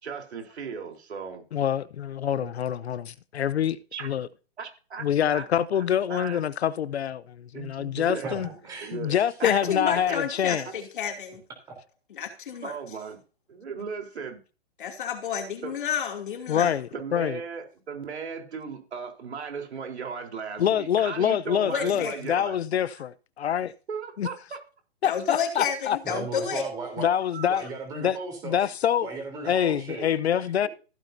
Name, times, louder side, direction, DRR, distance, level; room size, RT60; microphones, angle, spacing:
voice 1, 0.0-1.4 2.3-2.5 3.9-4.1 4.6-5.0 5.3-5.4 5.7-5.8 6.1-6.4 7.5-8.5 8.8-10.2 12.6-13.2 13.5-14.4 15.6-15.7 16.9-22.6 23.9-24.6 27.3-27.5, right 5 dB, 85° right, 3.9 m, -37 dB
voice 2, 1.5-3.8 4.0-4.3 5.0-8.5 8.9-10.6 16.5-17.4 20.6-23.7 24.2-24.3 25.0-26.0 27.0-27.6 28.0-28.2 28.4-29.1 29.4-30.7, left 9 dB, 75° left, 0.8 m, -26 dB
voice 3, 8.2-9.2 26.0-27.1 27.5-28.6 29.0-30.1, right 3 dB, 10° right, 3.4 m, -36 dB
voice 4, 9.4-11.4 12.1-12.7 14.8-16.7 21.7-22.2 25.0-26.6, left 7 dB, 50° left, 2.7 m, -30 dB
15.0 x 8.9 x 2.7 m
hypercardioid pair, 175°, 32 cm